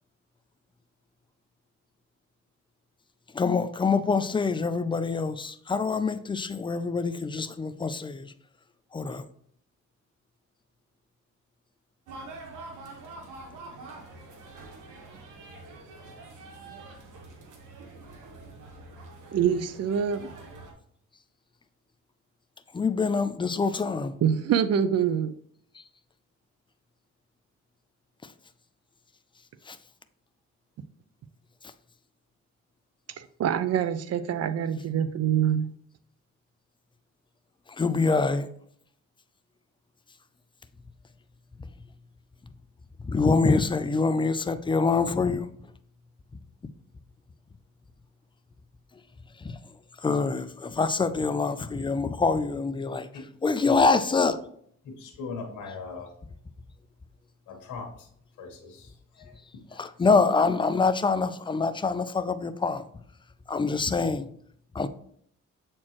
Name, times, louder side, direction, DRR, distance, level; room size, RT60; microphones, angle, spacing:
voice 1, 3.3-8.3 8.9-9.2 22.7-24.1 29.7-29.8 37.8-38.5 43.0-45.5 49.4-49.6 50.0-53.1 53.4-54.4 59.7-62.9 63.5-64.3 64.7-64.9, left 4 dB, 15° left, 0.4 m, -25 dB
sound 1, 12.1-20.7, right 2 dB, 80° right, 1.3 m, -45 dB
voice 2, 19.3-20.3 24.2-25.3 33.2-35.7, right 8 dB, 55° right, 0.5 m, -25 dB
voice 3, 54.8-56.1 57.5-58.1 58.4-59.4 59.7-59.9, left 4 dB, 80° left, 1.4 m, -40 dB
7.2 x 4.4 x 3.0 m
cardioid pair, 90°, 30 cm